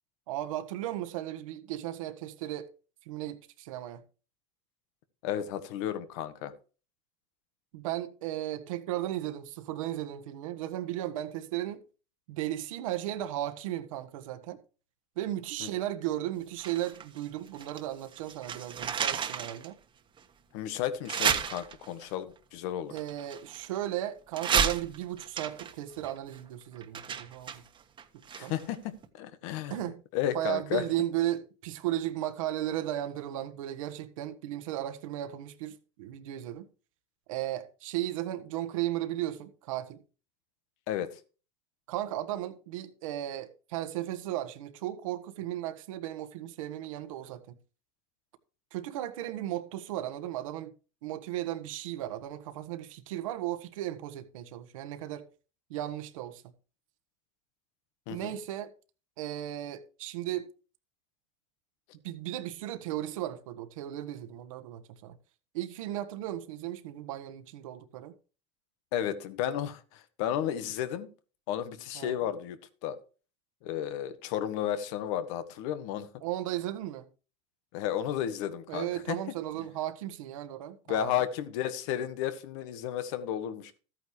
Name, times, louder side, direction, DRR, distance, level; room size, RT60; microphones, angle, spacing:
voice 1, 0.3-2.7 3.0-4.0 7.7-11.8 12.3-14.6 15.2-19.8 22.9-27.6 28.4-28.5 29.7-30.0 30.3-36.7 37.3-40.0 41.9-47.6 48.7-50.7 51.0-55.3 55.7-56.4 58.1-58.7 59.2-60.5 62.0-65.1 65.5-68.1 71.9-72.2 76.2-77.1 78.7-81.2, right 13 dB, 85° right, 1.4 m, -35 dB
voice 2, 5.2-6.5 15.6-15.7 20.5-22.9 28.3-29.8 30.1-30.8 40.9-41.1 58.1-58.3 68.9-71.1 71.5-73.0 73.6-76.1 77.7-79.2 80.9-83.8, left 10 dB, 70° left, 1.4 m, -33 dB
sound 1, 16.6-17.9 18.1-19.7 20.2-20.3 21.1-22.1 23.0-23.9 24.3-28.8 29.0-29.1, right 7 dB, 30° right, 1.4 m, -32 dB
13.5 x 9.1 x 3.2 m
supercardioid pair, 120°, 17 cm